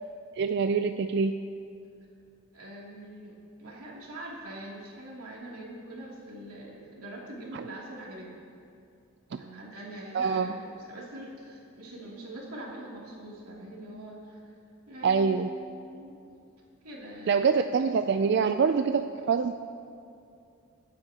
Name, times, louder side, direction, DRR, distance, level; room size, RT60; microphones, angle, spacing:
voice 1, 0.4-1.4 7.5-7.6 9.3-9.4 10.1-10.5 15.0-15.5 17.3-19.5, right 5 dB, 50° right, 8 dB, 0.3 m, -25 dB
voice 2, 2.5-3.3 3.6-8.4 9.3-14.4 14.9-15.4 15.9-16.1 16.8-17.6, right 1 dB, 85° right, -4 dB, 2.9 m, -43 dB
25.0 x 9.7 x 2.9 m, 2.5 s
head